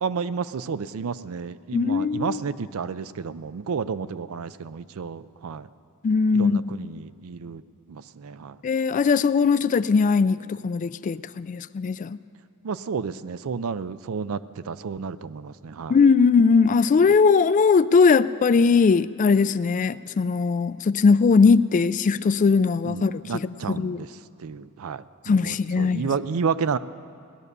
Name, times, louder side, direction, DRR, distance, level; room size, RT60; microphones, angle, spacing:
voice 1, 0.0-5.7 6.3-7.6 7.9-8.6 12.6-16.0 22.8-26.8, right 5 dB, 70° right, 15 dB, 0.4 m, -31 dB
voice 2, 1.7-2.4 6.0-6.6 8.6-12.2 15.9-24.0 25.3-26.1, left 5 dB, 35° left, 16 dB, 0.3 m, -20 dB
18.0 x 11.0 x 6.7 m, 2.3 s
head